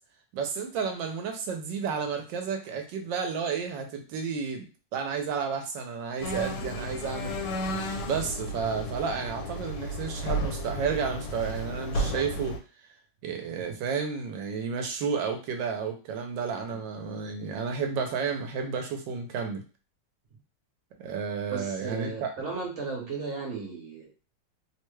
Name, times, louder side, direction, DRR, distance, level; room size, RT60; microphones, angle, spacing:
voice 1, 0.3-4.7 4.9-7.3 8.0-12.6 13.2-19.6 21.0-22.3 23.0-23.1, right 6 dB, 85° right, 4 dB, 1.3 m, -31 dB
sound 1, 6.2-12.6, equal, 75° left, 1.2 m, -33 dB
voice 2, 21.5-24.1, right 4 dB, 50° right, -1 dB, 1.0 m, -35 dB
3.1 x 2.2 x 3.1 m, 0.34 s
omnidirectional pair, 2.0 m